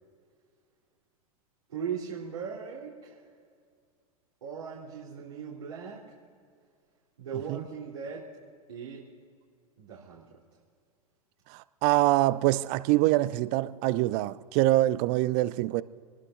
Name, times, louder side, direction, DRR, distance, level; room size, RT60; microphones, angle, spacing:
voice 1, 1.7-3.2 4.4-6.0 7.2-8.2 8.7-9.0 9.8-10.3, right 7 dB, 65° right, 3.2 m, -38 dB
voice 2, 11.8-15.8, right 17 dB, 35° right, 0.5 m, -24 dB
27.0 x 20.0 x 2.6 m
figure-of-eight pair, 95°, 19 cm